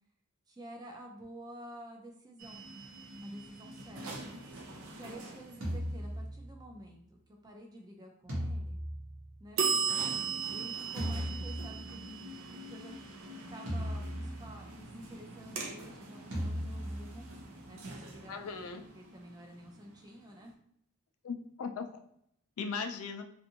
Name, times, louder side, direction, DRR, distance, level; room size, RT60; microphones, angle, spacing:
voice 1, 0.5-2.7 3.2-4.2 4.8-8.8 9.4-9.6 10.5-12.3 12.7-13.0 13.3-17.3 17.7-20.6, right 1 dB, 20° right, 1 dB, 0.4 m, -50 dB
sound 1, 2.4-6.1 9.6-20.2, right 5 dB, 75° right, 0.5 m, -39 dB
sound 2, 5.6-6.8 8.3-9.8 11.0-12.2 13.7-14.9 16.3-17.4, equal, 60° right, 0.9 m, -38 dB
voice 2, 18.3-18.8 21.2-22.0 22.6-23.2, left 5 dB, 85° left, 6 dB, 0.4 m, -38 dB
2.6 x 2.5 x 2.7 m, 0.71 s
head